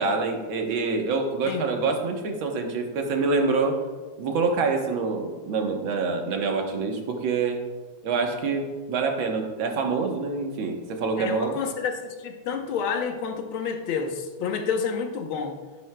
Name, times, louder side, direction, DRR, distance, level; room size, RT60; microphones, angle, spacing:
voice 1, 0.0-3.8 4.2-7.6 8.0-11.6, right 4 dB, 85° right, 3 dB, 1.9 m, -26 dB
voice 2, 11.2-15.6, left 6 dB, 85° left, 4 dB, 1.8 m, -29 dB
12.5 x 10.5 x 2.2 m, 1.4 s
omnidirectional pair, 2.1 m